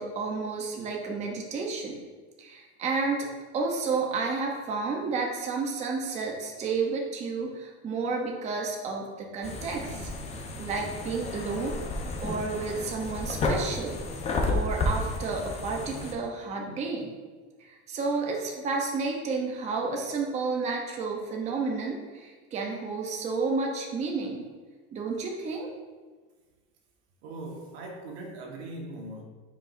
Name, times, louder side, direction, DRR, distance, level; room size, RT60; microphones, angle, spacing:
voice 1, 0.0-2.0 2.4-3.3 3.5-10.1 10.6-11.8 12.2-14.0 14.5-17.1 17.6-24.4 24.9-25.7, right 4 dB, 20° right, 0 dB, 0.7 m, -31 dB
sound 1, 9.4-16.1, left 2 dB, 20° left, 0.7 m, -32 dB
voice 2, 27.2-29.2, right 2 dB, 80° right, 0 dB, 1.5 m, -40 dB
9.0 x 4.9 x 2.5 m, 1.4 s
cardioid pair, 165°, 32 cm